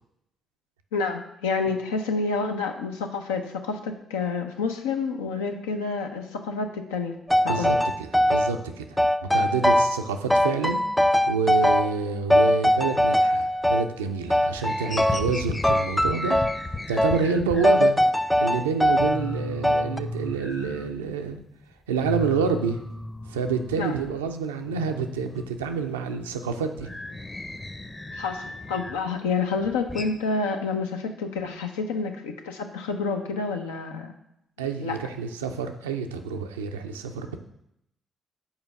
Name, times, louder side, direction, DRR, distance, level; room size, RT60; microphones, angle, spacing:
voice 1, 0.9-7.2 7.4-7.7 23.8-23.9 28.1-34.1 34.8-35.0, left 4 dB, 85° left, 4 dB, 0.6 m, -29 dB
sound 1, 7.3-8.5 9.0-10.0 10.3-12.0 12.3-13.9 14.3-15.4 15.6-16.6 17.0-17.2 17.6-19.2 19.6-20.0, left 1 dB, 10° left, 0.3 m, -21 dB
voice 2, 7.4-10.8 11.3-16.5 16.9-17.9 18.4-21.4 21.9-22.8 23.2-26.9 34.6-37.4, right 5 dB, 85° right, 6 dB, 0.4 m, -28 dB
sound 2, 13.3-14.1 14.4-17.8 18.2-18.3 18.6-18.7 18.9-21.4 21.7-24.3 24.6-29.1 29.4-30.1, left 1 dB, 25° left, 0.8 m, -36 dB
5.7 x 4.5 x 5.7 m, 0.80 s
hypercardioid pair, 40°, 0 cm